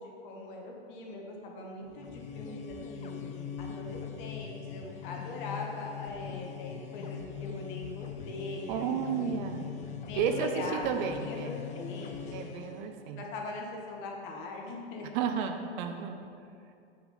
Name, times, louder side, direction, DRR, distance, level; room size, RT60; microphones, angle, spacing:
voice 1, 0.0-3.1 3.6-9.3 10.1-10.9 11.2-12.5 13.2-15.1, left 2 dB, 50° left, 0 dB, 1.6 m, -41 dB
sound 1, 1.9-12.9, left 8 dB, 25° left, 0.5 m, -41 dB
voice 2, 8.7-9.7 10.1-10.5 10.8-11.5 12.3-13.2 15.1-16.2, right 7 dB, 45° right, 6 dB, 0.7 m, -32 dB
8.4 x 4.6 x 5.7 m, 2.5 s
hypercardioid pair, 100°, 32 cm